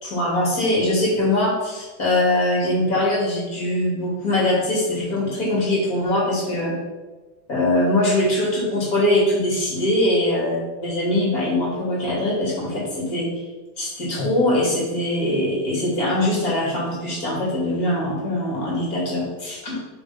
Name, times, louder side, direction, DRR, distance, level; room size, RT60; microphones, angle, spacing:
voice 1, 0.0-6.7 7.5-13.4 13.8-19.8, left 1 dB, 30° left, -3 dB, 2.6 m, -22 dB
6.7 x 4.8 x 5.8 m, 1.2 s
omnidirectional pair, 3.6 m